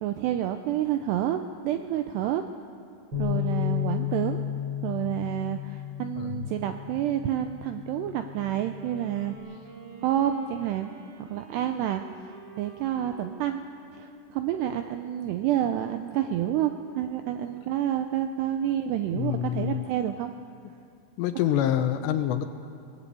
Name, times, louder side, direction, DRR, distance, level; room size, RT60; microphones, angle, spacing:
voice 1, 0.0-2.4 3.2-4.4 4.8-9.4 10.0-10.9 11.2-13.6 13.9-20.3, right 11 dB, 85° right, 7 dB, 2.4 m, -29 dB
Bass guitar, 3.1-9.4, left 12 dB, 25° right, 7.1 m, -33 dB
voice 2, 6.2-6.5 19.1-19.8 21.2-22.5, left 11 dB, 75° left, 8 dB, 2.8 m, -26 dB
Wind instrument woodwind instrument, 8.5-17.2, right 1 dB, 50° right, 4.5 m, -49 dB
22.0 x 19.5 x 8.4 m, 2.4 s
omnidirectional pair, 5.6 m